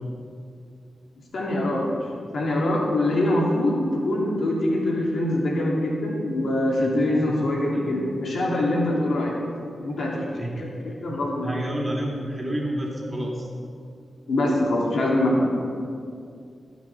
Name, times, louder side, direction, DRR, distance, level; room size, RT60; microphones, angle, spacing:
voice 1, 1.3-1.9 2.3-9.3 9.8-11.6 14.3-15.5, left 1 dB, 70° left, -3 dB, 2.8 m, -24 dB
voice 2, 6.8-7.3 7.7-7.9 10.3-10.7 11.0-13.5, right 1 dB, 30° right, -2 dB, 2.8 m, -30 dB
17.0 x 6.1 x 6.0 m, 2.3 s
cardioid pair, 60°, 0 cm